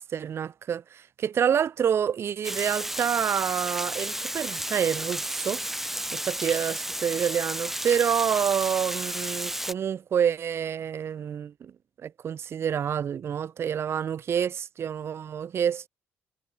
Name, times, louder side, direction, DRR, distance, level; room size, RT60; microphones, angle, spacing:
voice 1, 0.0-11.7 12.0-15.9, right 8 dB, 50° right, 0.5 m, -28 dB
Water, 2.4-9.7, right 1 dB, 5° right, 0.9 m, -32 dB
supercardioid pair, 60°, 5 cm